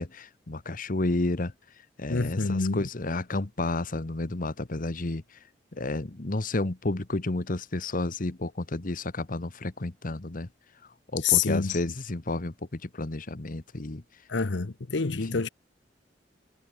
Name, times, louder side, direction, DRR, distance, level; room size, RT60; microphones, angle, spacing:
voice 1, 0.0-1.5 2.0-5.4 5.7-10.5 11.1-14.0 15.1-15.4, left 2 dB, 50° left, 1.2 m, -31 dB
voice 2, 2.1-2.8 11.2-11.8 14.3-15.5, left 5 dB, 75° left, 0.9 m, -27 dB
head